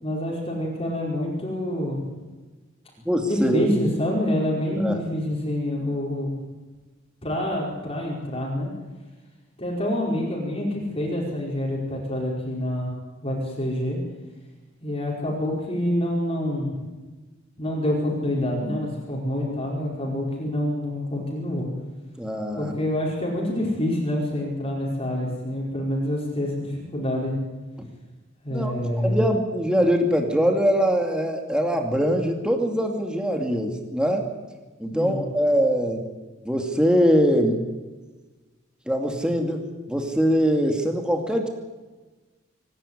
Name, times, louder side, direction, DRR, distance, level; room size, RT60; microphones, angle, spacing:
voice 1, 0.0-2.0 3.2-6.4 7.2-8.7 9.6-12.9 13.2-14.0 14.8-16.8 17.6-21.7 22.5-27.3 28.4-29.2 34.9-35.2, left 1 dB, 30° left, -3 dB, 5.0 m, -27 dB
voice 2, 3.1-3.7 4.8-5.0 22.2-22.8 27.8-27.9 28.5-28.7 29.0-34.3 34.8-36.0 36.4-37.6 38.9-41.5, equal, 5° right, 3 dB, 2.4 m, -22 dB
25.5 x 12.0 x 9.9 m, 1.2 s
head